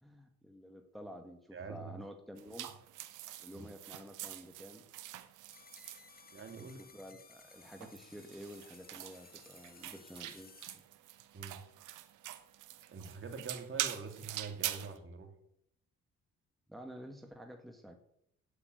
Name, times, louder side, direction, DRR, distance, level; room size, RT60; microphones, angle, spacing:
voice 1, 0.0-2.7 3.4-4.8 6.6-10.5 16.7-18.0, equal, ahead, 4 dB, 1.5 m, -50 dB
voice 2, 1.5-1.9 3.5-3.7 6.3-6.8 11.3-11.6 12.9-15.3, right 4 dB, 45° right, 4 dB, 2.9 m, -45 dB
sound 1, 2.4-6.7 7.4-15.0, right 14 dB, 90° right, 1.0 m, -44 dB
sound 2, 5.5-10.7, left 5 dB, 30° left, 1.5 m, -58 dB
8.7 x 8.3 x 9.3 m, 0.73 s
cardioid pair, 90°, 30 cm